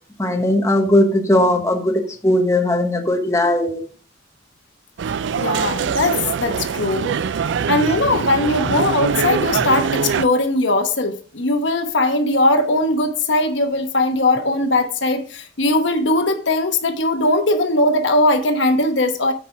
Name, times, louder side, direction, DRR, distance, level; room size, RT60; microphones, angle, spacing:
voice 1, 0.2-3.8 9.6-9.7, left 1 dB, 15° left, 1.0 m, -18 dB
sound 1, 5.0-10.3, right 6 dB, 70° right, 0.4 m, -23 dB
voice 2, 5.4-7.1 7.7-19.3, left 2 dB, 75° left, 1.0 m, -19 dB
9.1 x 4.5 x 4.7 m
head